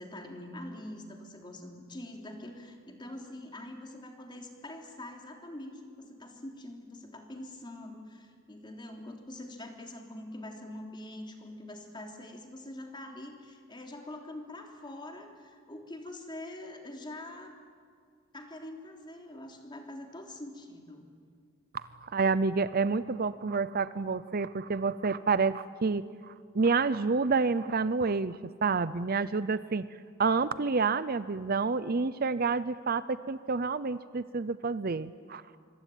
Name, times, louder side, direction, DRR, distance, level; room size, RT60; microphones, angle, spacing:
voice 1, 0.0-17.6 18.3-21.1, left 1 dB, 25° left, 2 dB, 3.3 m, -44 dB
voice 2, 21.7-29.9 30.2-35.6, right 4 dB, 45° right, 15 dB, 0.6 m, -29 dB
25.0 x 24.5 x 9.2 m, 2.1 s
head